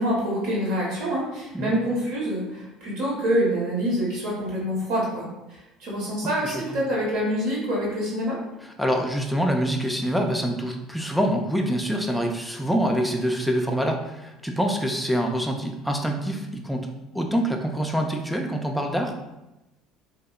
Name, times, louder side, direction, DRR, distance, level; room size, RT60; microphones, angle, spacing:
voice 1, 0.0-8.3, equal, 65° right, -5 dB, 0.9 m, -26 dB
voice 2, 6.4-6.8 8.6-16.9 17.1-19.1, equal, ahead, 2 dB, 0.4 m, -25 dB
2.6 x 2.0 x 2.3 m, 0.97 s
hypercardioid pair, 65°, 0 cm